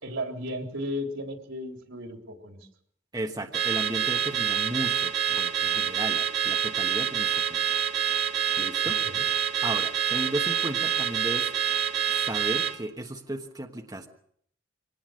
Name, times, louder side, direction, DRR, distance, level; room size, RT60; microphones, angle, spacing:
voice 1, 0.0-2.7 9.0-9.2, equal, 85° right, 4 dB, 3.6 m, -35 dB
voice 2, 3.1-7.7 8.6-9.0 9.6-11.5 12.1-14.1, right 1 dB, 20° right, 3 dB, 1.3 m, -35 dB
Car / Alarm, 3.5-12.8, right 9 dB, 55° right, 2.0 m, -27 dB
24.0 x 18.5 x 6.5 m, 0.65 s
head